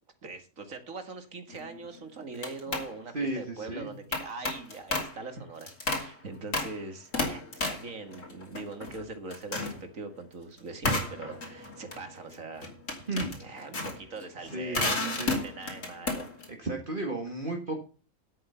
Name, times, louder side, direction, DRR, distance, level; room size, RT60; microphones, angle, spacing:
voice 1, 0.2-12.7 13.4-16.3, right 3 dB, 70° right, 8 dB, 2.3 m, -42 dB
sound 1, 1.5-1.8 2.4-2.9 4.1-5.2 5.6-6.1 6.5-6.8 7.1-9.0 9.3-9.8 10.8-16.5, left 2 dB, 65° left, 3.3 m, -32 dB
voice 2, 3.1-3.9 13.1-13.4 14.4-15.3 16.5-17.8, right 2 dB, 40° right, 2 dB, 2.1 m, -34 dB
11.0 x 8.3 x 5.7 m, 0.36 s
omnidirectional pair, 1.5 m